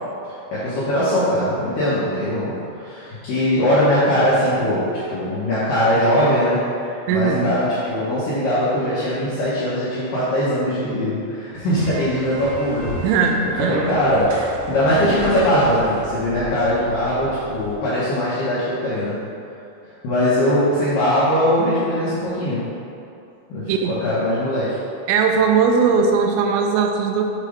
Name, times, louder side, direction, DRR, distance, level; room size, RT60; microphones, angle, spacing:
voice 1, 0.5-6.6 6.8-13.0 13.6-14.4 14.7-19.2 20.0-22.6 23.5-24.8, equal, 75° left, -10 dB, 2.1 m, -20 dB
voice 2, 7.1-7.5 13.0-13.8 23.7-23.9 25.1-27.2, right 5 dB, 90° right, 4 dB, 2.9 m, -19 dB
sound 1, 11.7-17.7, left 1 dB, 70° right, 2.4 m, -35 dB
7.3 x 3.3 x 4.9 m, 2.7 s
omnidirectional pair, 5.2 m